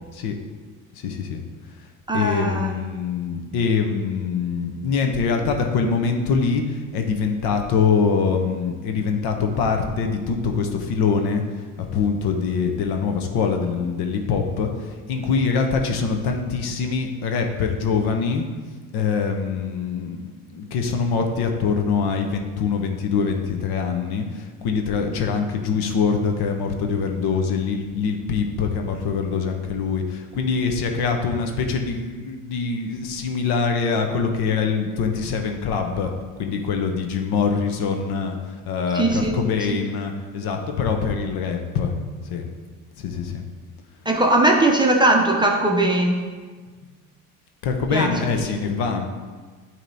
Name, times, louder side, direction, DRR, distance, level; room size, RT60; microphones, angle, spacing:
voice 1, 0.9-1.4 2.1-11.4 11.9-18.4 18.9-20.2 20.5-36.1 36.4-41.9 42.2-42.5 43.0-43.4 47.6-49.1, left 5 dB, 55° left, 4 dB, 0.9 m, -24 dB
voice 2, 2.1-2.8 38.9-39.4 39.7-39.8 44.1-46.2 47.9-48.1, right 2 dB, 10° right, 0 dB, 0.8 m, -19 dB
8.9 x 3.1 x 4.0 m, 1.5 s
hypercardioid pair, 80°, 46 cm